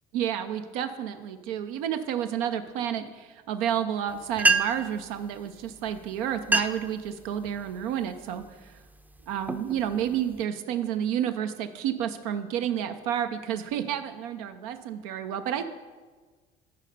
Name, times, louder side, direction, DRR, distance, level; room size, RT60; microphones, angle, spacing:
voice 1, 0.1-8.7 9.3-15.7, right 9 dB, 90° right, 8 dB, 0.5 m, -30 dB
sound 1, 4.1-4.2 4.4-5.0 5.9-6.0 6.4-6.9 7.4-7.8 8.4-8.7 9.2-10.4, right 3 dB, 10° right, 0.4 m, -26 dB
10.5 x 4.2 x 5.3 m, 1.4 s
supercardioid pair, 80°, 18 cm